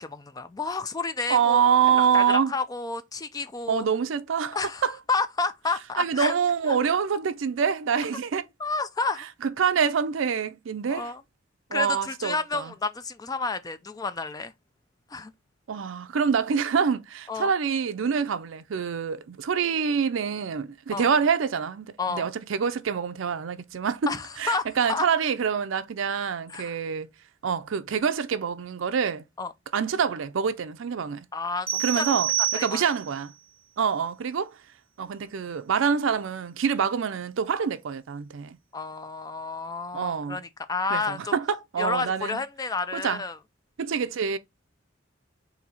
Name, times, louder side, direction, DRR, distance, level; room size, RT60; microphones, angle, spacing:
voice 1, 0.0-1.6 1.9-3.9 4.5-4.8 5.1-6.3 6.7-6.8 8.6-9.3 10.9-11.2 11.7-14.5 15.1-15.3 17.3-17.5 20.9-21.1 22.0-22.3 24.1-25.1 26.5-26.7 29.4-29.5 31.3-32.1 32.5-32.9 38.7-41.3 41.8-43.4, left 4 dB, 20° left, 0.4 m, -30 dB
voice 2, 1.3-2.5 3.7-4.9 6.0-8.5 9.4-11.1 11.7-12.7 15.7-27.1 27.4-29.2 29.7-31.2 31.8-33.3 33.8-34.5 35.0-38.6 39.9-40.4 40.9-42.4 42.9-43.2 43.8-44.4, right 6 dB, 70° right, 0.4 m, -26 dB
sound 1, 31.7-33.2, right 12 dB, 30° right, 1.2 m, -28 dB
4.0 x 2.7 x 4.2 m
head